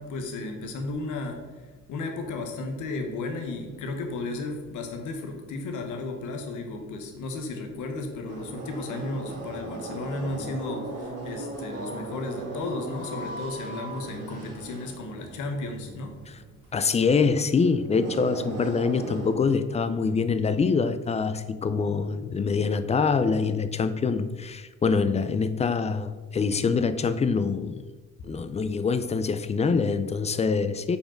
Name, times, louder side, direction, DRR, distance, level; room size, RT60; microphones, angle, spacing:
voice 1, 0.0-16.2, left 2 dB, 80° left, 1.1 m, -34 dB
sound 1, 8.3-19.3, right 2 dB, 55° right, 1.7 m, -38 dB
voice 2, 16.7-27.8 28.2-31.0, left 5 dB, 20° left, 0.4 m, -25 dB
5.3 x 4.6 x 4.4 m
cardioid pair, 90°, 30 cm